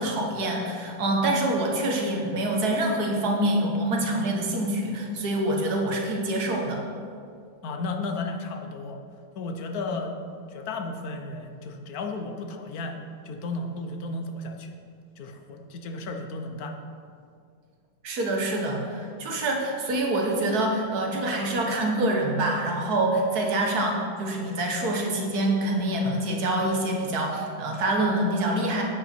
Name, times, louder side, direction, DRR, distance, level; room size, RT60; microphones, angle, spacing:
voice 1, 0.0-6.8 18.0-28.8, right 1 dB, 55° right, 1 dB, 1.7 m, -26 dB
voice 2, 7.6-9.0 9.4-10.1 10.5-14.7 15.2-16.8, left 3 dB, 60° left, 4 dB, 1.1 m, -34 dB
9.1 x 8.3 x 4.4 m, 2.3 s
omnidirectional pair, 2.1 m